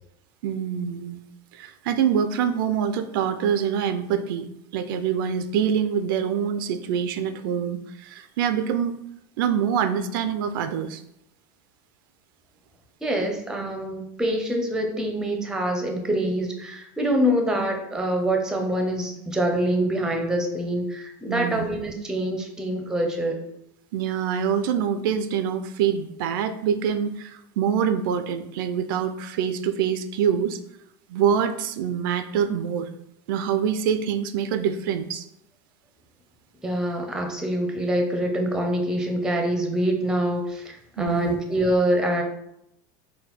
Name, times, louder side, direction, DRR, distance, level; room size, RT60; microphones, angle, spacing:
voice 1, 0.4-1.2 1.5-4.5 4.7-8.9 9.4-11.0 21.3-21.7 23.9-30.6 31.1-32.9 33.3-35.3 41.0-41.4, right 8 dB, 80° right, 10 dB, 0.4 m, -25 dB
voice 2, 13.0-23.4 36.6-42.2, right 1 dB, 5° right, 3 dB, 0.5 m, -25 dB
4.2 x 2.1 x 4.0 m, 0.78 s
supercardioid pair, 145°, 11 cm